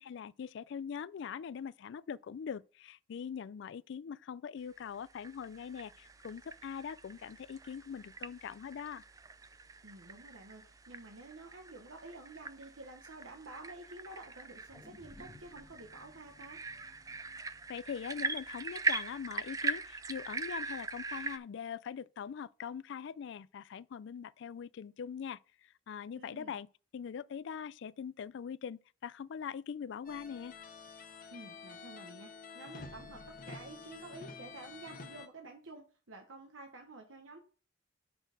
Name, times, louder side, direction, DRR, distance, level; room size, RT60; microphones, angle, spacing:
voice 1, 0.0-9.0 17.7-25.4 25.9-26.7 26.9-30.5, left 7 dB, 65° left, 0.3 m, -42 dB
sound 1, 4.9-21.4, right 4 dB, 20° right, 0.3 m, -41 dB
voice 2, 9.8-16.6 26.2-26.5 31.3-37.4, right 2 dB, 85° right, 1.2 m, -50 dB
sound 2, 14.7-19.2 19.6-19.7, left 2 dB, 5° right, 3.5 m, -59 dB
sound 3, 30.0-35.3, left 4 dB, 45° left, 0.9 m, -49 dB
6.4 x 5.9 x 5.1 m
head